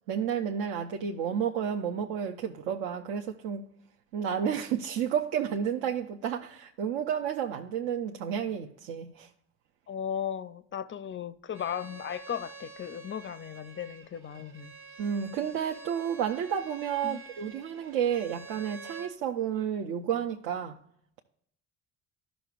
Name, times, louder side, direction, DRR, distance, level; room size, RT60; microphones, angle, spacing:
voice 1, 0.1-3.6 4.1-9.3 15.0-20.8, right 8 dB, 65° right, 0.7 m, -31 dB
voice 2, 9.9-14.7 17.0-17.2, left 9 dB, 25° left, 0.4 m, -36 dB
Bowed string instrument, 11.5-19.1, right 4 dB, 50° right, 1.3 m, -48 dB
13.0 x 6.0 x 2.4 m
hypercardioid pair, 50°, 48 cm